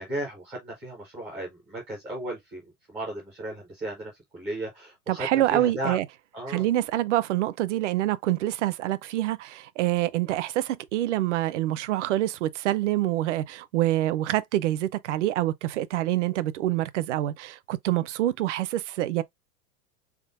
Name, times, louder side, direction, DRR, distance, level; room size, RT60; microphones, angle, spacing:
voice 1, 0.0-6.0 6.3-6.7, right 1 dB, 5° right, 0.3 m, -35 dB
voice 2, 5.1-6.0 6.5-19.2, right 14 dB, 55° right, 0.6 m, -26 dB
4.0 x 3.7 x 2.5 m
supercardioid pair, 170°, 44 cm